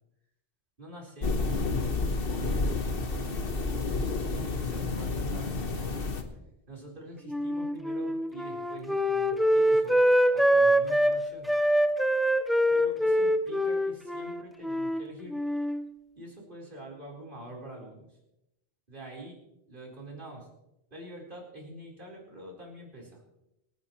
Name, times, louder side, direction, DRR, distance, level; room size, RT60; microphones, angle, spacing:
voice 1, 0.8-5.9 6.7-11.5 12.7-15.4 16.2-18.2 18.9-19.4 19.7-20.5 20.9-23.2, right 1 dB, 45° right, -3 dB, 4.5 m, -46 dB
sound 1, 1.2-6.2, left 3 dB, 55° left, 1.4 m, -30 dB
Wind instrument woodwind instrument, 7.3-11.2 11.5-15.0 15.3-15.8, equal, ahead, 0.5 m, -24 dB
27.5 x 9.7 x 3.1 m, 0.88 s
omnidirectional pair, 1.2 m